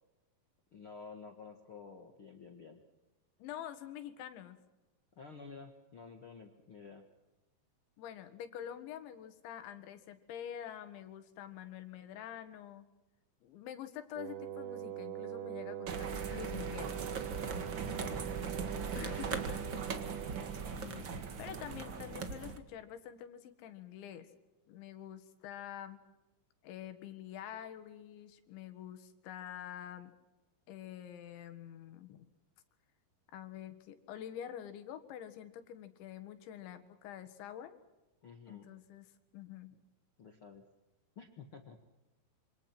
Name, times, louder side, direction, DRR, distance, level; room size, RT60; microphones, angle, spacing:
voice 1, 0.7-2.8 5.1-7.0 17.8-18.2 18.6-19.1 38.2-38.7 40.2-40.6 41.1-41.8, left 5 dB, 60° left, 5 dB, 1.4 m, -51 dB
voice 2, 3.4-4.6 8.0-12.9 13.4-17.0 19.0-19.9 20.8-24.3 24.7-26.0 26.6-30.1 30.7-32.3 33.3-37.7 38.5-39.8, left 10 dB, 90° left, 9 dB, 4.1 m, -47 dB
Wind instrument woodwind instrument, 14.1-20.7, right 12 dB, 85° right, 3.4 m, -43 dB
sound 1, 15.9-22.6, right 5 dB, 70° right, 1.1 m, -39 dB
27.0 x 26.0 x 6.1 m, 1.0 s
omnidirectional pair, 5.1 m